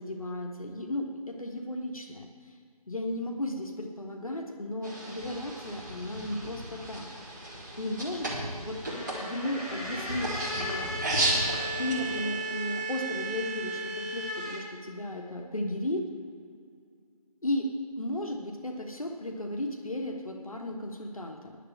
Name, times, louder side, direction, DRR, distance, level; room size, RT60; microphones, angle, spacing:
voice 1, 0.0-2.6 2.9-7.4 7.8-8.9 9.2-10.9 11.8-16.0 17.4-21.6, left 1 dB, 60° left, 2 dB, 1.4 m, -35 dB
sound 1, 4.8-12.2, right 1 dB, 30° right, 2.2 m, -34 dB
sound 2, 8.8-14.6, right 1 dB, 15° left, 2.0 m, -35 dB
10.0 x 7.3 x 8.8 m, 2.2 s
figure-of-eight pair, 170°, 20 cm